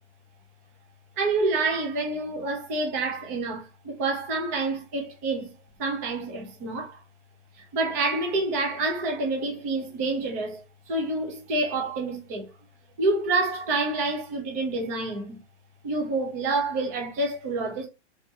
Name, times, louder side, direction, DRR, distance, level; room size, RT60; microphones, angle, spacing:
voice 1, 1.2-5.5 5.8-7.0 7.6-12.5 13.0-15.4 15.8-17.9, right 3 dB, 15° right, 0.5 m, -28 dB
3.5 x 2.8 x 2.5 m
hypercardioid pair, 170°, 35 cm